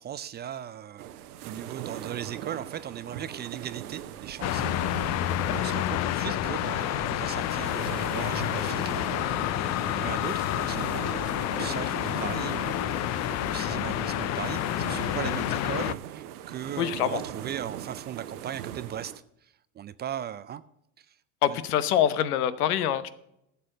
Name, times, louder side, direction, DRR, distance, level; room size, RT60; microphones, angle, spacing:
voice 1, 0.0-4.7 5.5-19.1 19.4-20.6 21.0-21.1 21.5-21.6, right 10 dB, 25° right, 15 dB, 0.4 m, -38 dB
sound 1, 1.0-19.2, right 11 dB, 90° right, 0.9 m, -40 dB
sound 2, 4.4-15.9, left 14 dB, 40° left, 0.4 m, -29 dB
voice 2, 16.8-17.2 21.4-23.1, left 10 dB, 90° left, 15 dB, 1.0 m, -25 dB
11.5 x 6.9 x 6.5 m, 0.78 s
supercardioid pair, 105°, 44 cm